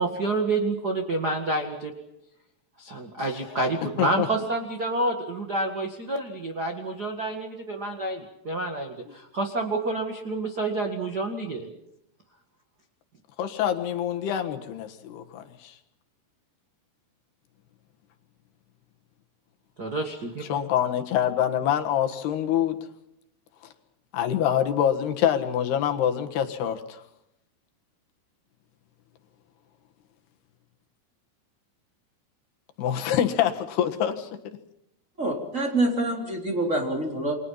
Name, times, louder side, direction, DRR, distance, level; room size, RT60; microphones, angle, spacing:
voice 1, 0.0-1.9 2.8-11.7 19.8-20.6, right 2 dB, 35° right, 4 dB, 1.6 m, -28 dB
voice 2, 13.4-15.8 20.5-22.8 24.1-27.0 32.8-34.6, left 10 dB, 85° left, 6 dB, 3.7 m, -26 dB
voice 3, 35.2-37.4, right 2 dB, 20° right, 1 dB, 4.1 m, -26 dB
29.5 x 23.5 x 5.7 m, 0.81 s
omnidirectional pair, 4.5 m